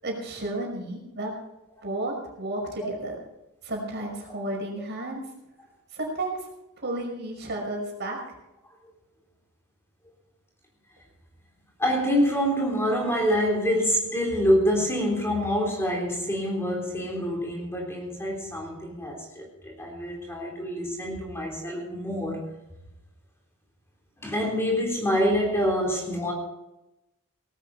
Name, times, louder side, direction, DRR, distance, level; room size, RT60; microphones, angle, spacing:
voice 1, 0.0-1.4 1.8-3.2 3.6-5.2 5.9-6.4 6.8-8.2, right 1 dB, 50° right, 0 dB, 5.7 m, -32 dB
voice 2, 11.8-22.4 24.2-26.3, equal, 10° left, -1 dB, 3.7 m, -26 dB
19.0 x 13.0 x 4.3 m, 0.91 s
head